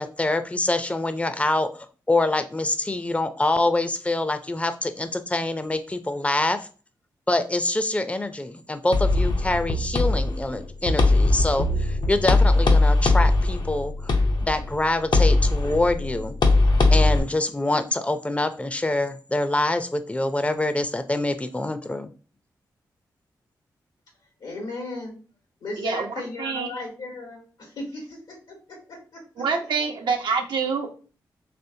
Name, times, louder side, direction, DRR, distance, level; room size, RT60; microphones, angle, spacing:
voice 1, 0.0-6.7 7.3-14.1 14.4-16.4 16.9-22.1, left 2 dB, 15° left, 10 dB, 0.5 m, -25 dB
sound 1, 8.9-17.2, left 2 dB, 65° left, 0.8 m, -20 dB
voice 2, 24.4-25.2 25.6-28.6 29.7-29.9, left 2 dB, 90° left, -1 dB, 1.9 m, -35 dB
voice 3, 25.8-26.7 29.4-31.0, right 5 dB, 75° right, 3 dB, 0.8 m, -26 dB
4.2 x 3.0 x 2.7 m, 0.38 s
supercardioid pair, 40°, 8 cm